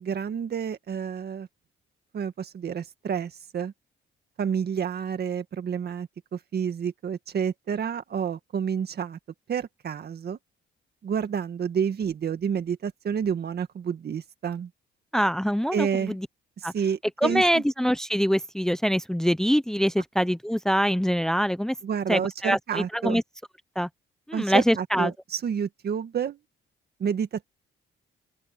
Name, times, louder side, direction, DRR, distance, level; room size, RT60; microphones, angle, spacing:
voice 1, 0.0-1.5 2.1-3.7 4.4-9.2 9.5-10.4 11.0-14.7 15.7-16.2 16.6-17.6 21.8-23.2 24.3-26.4 27.0-27.5, right 7 dB, 55° right, 1.9 m, -29 dB
voice 2, 15.1-16.3 16.6-16.7 17.2-21.8 22.1-23.2 23.8-23.9 24.3-25.1, equal, 5° left, 0.9 m, -24 dB
open air
cardioid pair, 90°, 20 cm